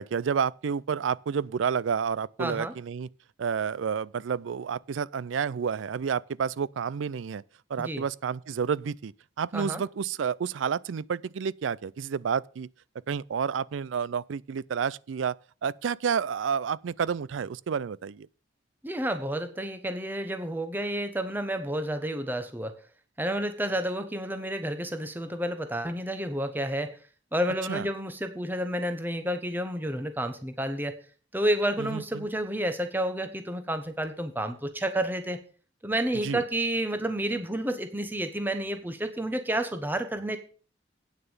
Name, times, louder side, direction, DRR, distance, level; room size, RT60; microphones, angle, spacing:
voice 1, 0.0-3.1 3.4-7.4 7.7-12.7 13.1-15.4 15.6-18.3 27.7-27.9 31.8-32.3 36.2-36.4, right 6 dB, 80° right, 0.4 m, -30 dB
voice 2, 2.4-2.7 7.8-8.0 9.5-9.8 18.8-22.7 23.2-27.0 27.3-30.9 31.3-35.4 35.8-40.4, right 1 dB, 10° right, 1.0 m, -30 dB
9.0 x 6.7 x 7.1 m
head